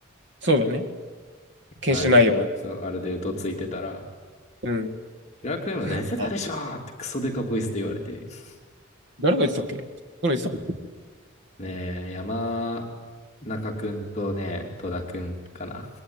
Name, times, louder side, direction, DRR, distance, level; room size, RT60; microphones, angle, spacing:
voice 1, 0.4-0.8 1.8-2.5 4.6-4.9 5.9-6.3 9.2-9.8 10.2-10.6, left 1 dB, 55° right, 6 dB, 2.1 m, -22 dB
voice 2, 1.9-2.2 2.6-4.0 5.4-8.5 11.6-12.8 13.4-15.9, left 1 dB, 35° left, 0 dB, 2.7 m, -30 dB
26.5 x 21.0 x 9.6 m, 1.5 s
head